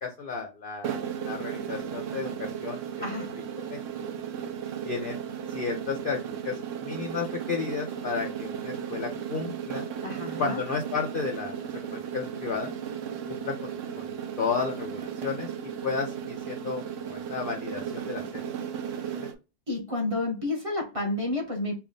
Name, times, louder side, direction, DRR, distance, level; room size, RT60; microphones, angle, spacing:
voice 1, 0.0-3.2 3.7-3.8 4.1-4.2 4.8-5.2 5.5-9.9 10.4-12.7 13.3-18.4 19.1-19.3, left 5 dB, 55° left, 0.6 m, -33 dB
sound 1, 0.8-19.4, right 8 dB, 65° right, 0.9 m, -35 dB
voice 2, 3.0-3.3 10.0-10.6 19.7-21.7, left 2 dB, 25° right, 1.0 m, -30 dB
3.5 x 2.3 x 3.8 m
omnidirectional pair, 1.5 m